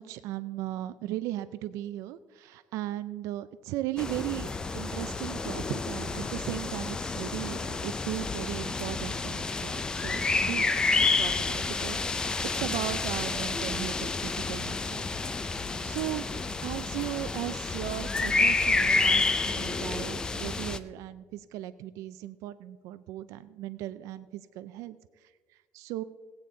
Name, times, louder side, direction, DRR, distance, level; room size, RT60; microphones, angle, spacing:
voice 1, 0.0-10.7 11.0-16.3 16.6-25.3 25.7-26.0, right 14 dB, 65° right, 13 dB, 0.4 m, -37 dB
sound 1, 4.0-20.8, left 3 dB, 15° left, 0.4 m, -29 dB
18.5 x 8.5 x 3.7 m, 1.5 s
cardioid pair, 170°, 6 cm